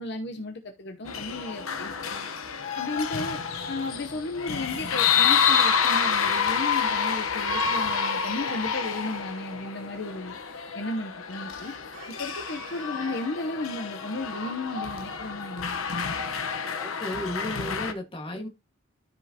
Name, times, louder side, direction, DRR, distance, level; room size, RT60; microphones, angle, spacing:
voice 1, 0.0-2.3 2.7-3.4 3.7-10.4 10.7-11.7 12.2-16.1, left 2 dB, 55° left, 0.9 m, -34 dB
sound 1, 1.1-17.9, left 6 dB, 85° left, 1.1 m, -28 dB
sound 2, 1.4-2.3 2.6-2.7 2.9-9.0, right 1 dB, 60° right, 4.5 m, -52 dB
Chicken rooster, 7.2-8.2 11.6-13.7, right 4 dB, 35° right, 2.5 m, -49 dB
voice 2, 16.8-18.5, left 1 dB, 25° left, 1.7 m, -34 dB
13.0 x 5.4 x 2.9 m
head